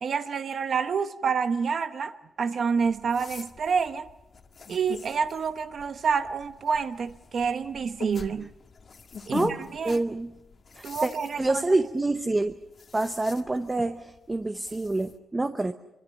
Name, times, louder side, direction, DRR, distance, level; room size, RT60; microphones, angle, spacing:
voice 1, 0.0-4.1 4.7-8.5 9.3-9.4 9.7-10.0 10.8-11.6, right 6 dB, 50° right, 0.9 m, -28 dB
sound 1, 2.8-15.2, left 5 dB, 45° left, 1.8 m, -44 dB
voice 2, 9.8-10.3 10.8-11.1 11.4-12.6 12.9-15.7, right 2 dB, 15° right, 0.8 m, -27 dB
25.0 x 24.0 x 6.4 m
wide cardioid pair, 160°, 0 cm